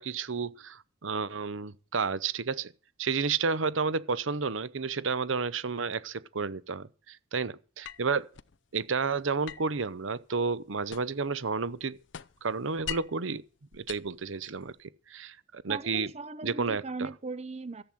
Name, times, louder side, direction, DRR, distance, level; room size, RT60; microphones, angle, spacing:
voice 1, 0.0-2.7 3.0-8.3 8.7-12.0 12.4-13.4 13.7-16.1 16.4-17.1, right 5 dB, 85° right, 0.8 m, -31 dB
sound 1, 7.8-8.6 9.4-11.3 11.6-13.3 13.7-14.8, left 10 dB, 70° left, 0.6 m, -43 dB
voice 2, 15.7-17.8, right 3 dB, 35° right, 0.6 m, -38 dB
14.0 x 8.0 x 7.5 m
head